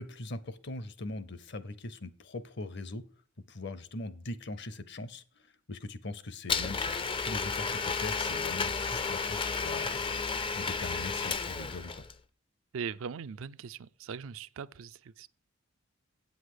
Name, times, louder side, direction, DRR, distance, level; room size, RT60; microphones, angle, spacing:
voice 1, 0.0-3.0 3.5-12.0, left 2 dB, 50° left, 0.7 m, -41 dB
Domestic sounds home sounds, 6.5-12.1, left 5 dB, 25° left, 0.4 m, -32 dB
voice 2, 12.7-15.3, right 6 dB, 65° right, 0.4 m, -40 dB
8.2 x 7.9 x 4.9 m
head